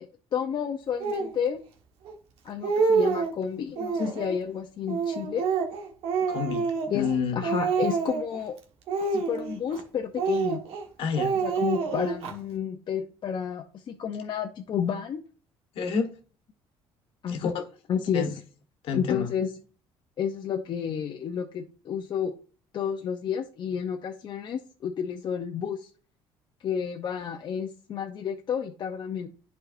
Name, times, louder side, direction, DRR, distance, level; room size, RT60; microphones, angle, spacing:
voice 1, 0.0-1.6 2.4-5.5 6.9-8.6 9.1-10.6 11.3-15.2 17.2-17.5 17.9-18.4 18.9-19.5 20.2-22.3 22.7-25.9 26.6-29.3, left 7 dB, 50° left, 0.7 m, -31 dB
Speech, 1.0-1.3 2.1-2.2 2.5-3.4 3.8-4.4 4.9-7.2 7.4-8.4 8.9-9.8 10.2-10.8 11.2-12.3, right 5 dB, 75° right, 1.4 m, -27 dB
voice 2, 6.3-6.7 6.9-7.4 11.0-11.3 15.7-16.1 17.3-17.6 18.1-18.3 18.8-19.3, left 6 dB, 65° left, 1.3 m, -28 dB
10.5 x 4.6 x 2.5 m
cardioid pair, 105°, 10 cm